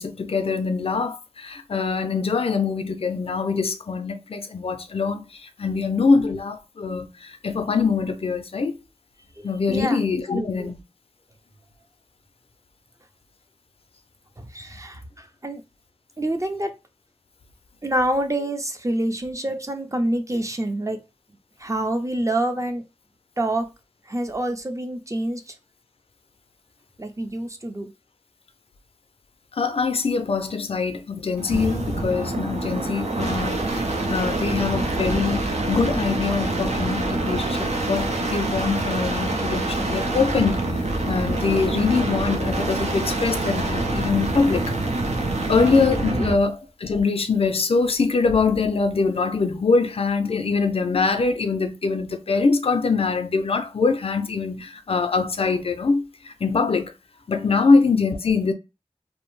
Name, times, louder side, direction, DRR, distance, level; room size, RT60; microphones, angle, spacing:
voice 1, 0.0-8.8 9.4-10.8 29.5-33.8 34.1-44.8 45.5-56.9 57.3-58.5, left 4 dB, 55° left, 0.4 m, -23 dB
voice 2, 9.4-10.0 10.3-10.7 14.4-15.6 16.2-16.7 17.8-21.0 21.6-22.8 23.4-23.7 24.1-25.5 27.0-27.9 46.0-46.4, right 1 dB, 25° right, 0.5 m, -27 dB
sound 1, 31.4-46.5 48.2-48.7, right 2 dB, 70° right, 0.5 m, -26 dB
2.6 x 2.0 x 3.0 m
wide cardioid pair, 55°, 12 cm